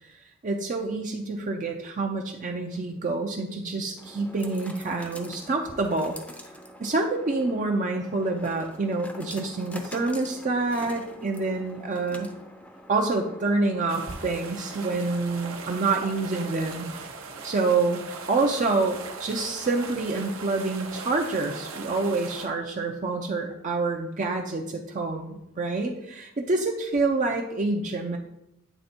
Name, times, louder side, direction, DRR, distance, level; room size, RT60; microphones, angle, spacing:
voice 1, 0.4-6.2 6.8-12.3 12.9-16.9 17.4-18.0 18.3-28.2, right 3 dB, 40° right, 2 dB, 0.5 m, -27 dB
sound 1, 2.6-16.5, equal, 5° left, 0.6 m, -46 dB
sound 2, 13.9-22.5, right 4 dB, 75° right, 0.8 m, -39 dB
9.1 x 3.4 x 4.3 m, 0.84 s
head